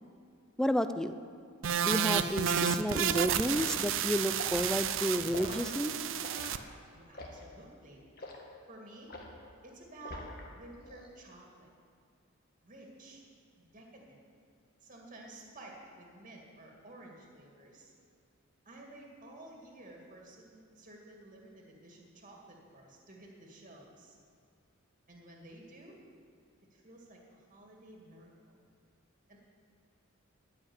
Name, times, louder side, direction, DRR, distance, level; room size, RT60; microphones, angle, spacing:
voice 1, 0.6-1.1 1.8-5.9, equal, 5° left, 10 dB, 0.4 m, -31 dB
sound 1, 1.6-6.6, right 8 dB, 65° right, 0.5 m, -31 dB
Liquid, 3.5-3.7 4.3-4.7 5.3-5.6 6.2-6.5 7.1-7.4 8.2-8.4 9.1-9.4 10.0-10.5 10.8-11.1, left 2 dB, 45° left, 1.7 m, -43 dB
voice 2, 6.9-8.0 8.7-9.1 9.6-11.7 12.6-13.2 13.6-14.2 14.8-17.9 18.7-24.2 25.1-26.0 26.7-28.6 29.3-29.4, right 2 dB, 40° right, 0 dB, 2.0 m, -52 dB
13.5 x 5.7 x 9.7 m, 2.2 s
head